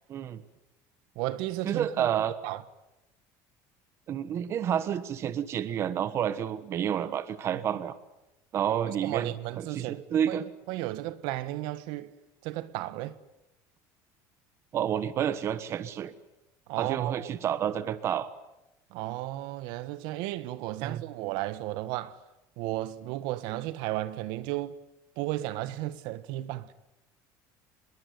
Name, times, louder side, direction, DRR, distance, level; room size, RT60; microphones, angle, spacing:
voice 1, 0.1-0.4 1.6-2.3 4.1-8.0 8.5-10.4 14.7-16.1 16.8-18.3 20.8-21.0, right 9 dB, 35° right, 1.3 m, -30 dB
voice 2, 1.1-2.1 2.4-2.6 7.5-7.6 8.8-10.0 10.3-10.4 10.7-12.1 12.4-13.2 16.7-17.3 18.9-22.2 22.6-24.8 25.2-26.7, right 16 dB, 65° right, 1.5 m, -34 dB
25.0 x 21.5 x 9.5 m
cardioid pair, 165°, 8 cm